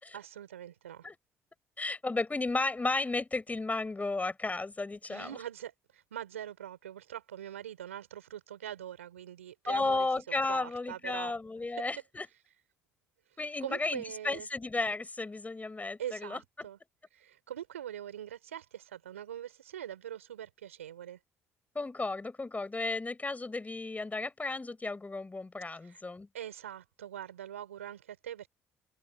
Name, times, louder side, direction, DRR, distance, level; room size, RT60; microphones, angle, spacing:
voice 1, 0.1-1.1 5.1-10.1 10.5-11.3 13.6-14.5 16.0-16.8 17.1-21.2 25.8-26.0 26.3-28.5, right 11 dB, 90° right, 4.8 m, -43 dB
voice 2, 1.8-5.3 9.7-12.3 13.4-16.4 21.7-26.3, left 3 dB, 20° left, 5.0 m, -33 dB
open air
hypercardioid pair, 50°, 7 cm